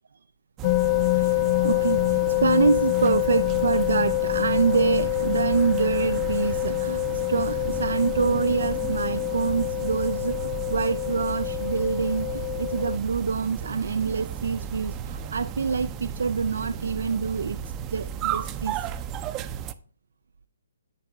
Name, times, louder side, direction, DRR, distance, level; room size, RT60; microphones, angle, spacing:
sound 1, 0.6-13.0, left 27 dB, 35° left, 0.4 m, -26 dB
sound 2, 0.6-19.7, right 8 dB, 20° right, 0.6 m, -34 dB
voice 1, 1.1-7.0 7.3-17.6 17.9-18.9, right 5 dB, 70° right, 0.4 m, -26 dB
10.5 x 8.8 x 3.5 m
figure-of-eight pair, 140°, 0 cm